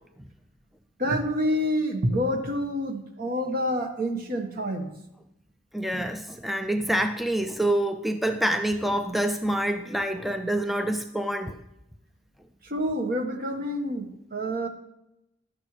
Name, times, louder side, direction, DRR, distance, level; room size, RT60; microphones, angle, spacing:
voice 1, 1.0-4.9 12.6-14.7, equal, 55° right, 5 dB, 1.4 m, -27 dB
voice 2, 5.7-11.6, right 1 dB, ahead, 7 dB, 0.4 m, -26 dB
15.5 x 11.5 x 3.2 m, 0.85 s
head